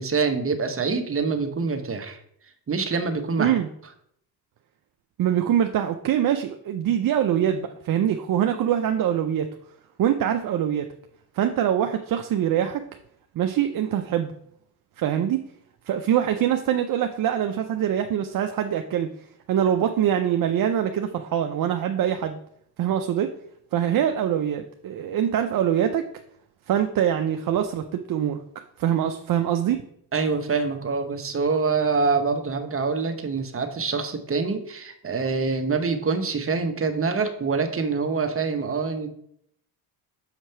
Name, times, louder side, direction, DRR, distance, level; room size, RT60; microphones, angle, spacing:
voice 1, 0.0-2.2 2.7-3.6 30.1-39.1, right 4 dB, 30° right, 7 dB, 0.9 m, -25 dB
voice 2, 5.2-9.5 10.0-10.9 11.3-12.8 13.4-14.3 15.0-15.4 15.9-19.1 19.5-22.4 22.8-23.3 23.7-26.1 26.7-28.4 28.8-29.8, right 10 dB, 45° right, 6 dB, 0.6 m, -23 dB
6.6 x 2.9 x 5.6 m, 0.70 s
supercardioid pair, 75°, 46 cm